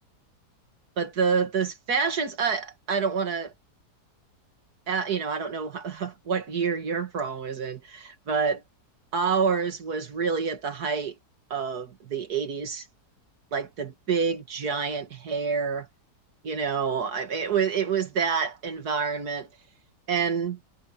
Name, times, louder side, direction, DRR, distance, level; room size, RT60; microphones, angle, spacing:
voice 1, 1.0-3.5 4.9-8.6 9.1-11.2 11.5-12.9 13.5-15.9 16.4-19.5 20.1-20.6, right 6 dB, 65° right, 2.4 m, -27 dB
omnidirectional pair, 1.8 m